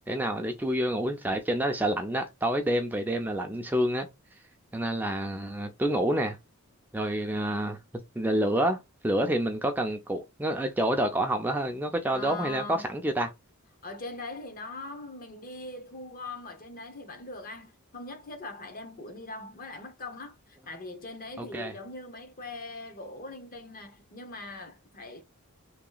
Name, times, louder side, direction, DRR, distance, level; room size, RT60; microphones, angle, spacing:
voice 1, 0.1-4.1 4.7-6.4 6.9-7.8 8.2-8.8 9.0-13.3 21.4-21.7, right 1 dB, 10° right, 0.4 m, -28 dB
voice 2, 12.1-12.9 13.8-25.2, left 2 dB, 40° left, 0.9 m, -41 dB
3.2 x 2.9 x 3.8 m
head